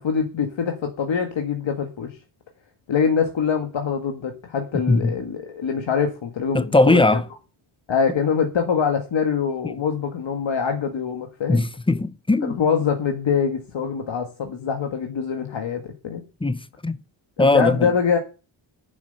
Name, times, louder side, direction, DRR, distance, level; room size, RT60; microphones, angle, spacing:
voice 1, 0.0-2.2 2.9-7.2 7.9-11.6 12.4-16.2 17.4-18.2, left 6 dB, 65° left, 1.7 m, -24 dB
voice 2, 6.5-7.3 11.5-12.6 16.4-17.0 17.4-17.9, left 2 dB, 10° left, 0.6 m, -19 dB
10.5 x 7.6 x 6.8 m
wide cardioid pair, 135°, 48 cm